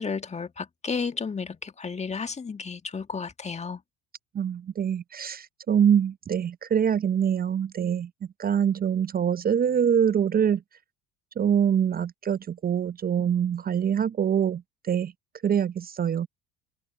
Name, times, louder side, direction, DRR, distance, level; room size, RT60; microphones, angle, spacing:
voice 1, 0.0-3.8, left 5 dB, 20° left, 1.8 m, -32 dB
voice 2, 4.3-8.1 8.4-10.6 11.4-15.1 15.4-16.3, right 8 dB, 30° right, 0.7 m, -24 dB
hypercardioid pair, 65°, 30 cm